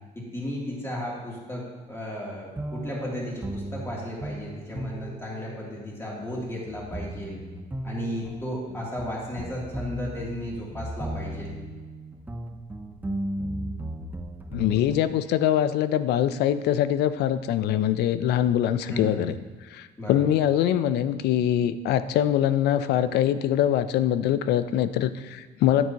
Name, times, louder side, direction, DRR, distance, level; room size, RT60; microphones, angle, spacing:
voice 1, 0.1-7.4 7.8-11.6 18.9-19.2 20.0-20.3, left 1 dB, 15° left, -5 dB, 2.9 m, -34 dB
sound 1, 2.6-15.0, right 1 dB, 10° right, 0.7 m, -36 dB
voice 2, 14.5-19.4 19.7-25.9, left 11 dB, 75° left, 13 dB, 0.5 m, -23 dB
9.5 x 9.1 x 2.9 m, 1.3 s
cardioid pair, 110°, 17 cm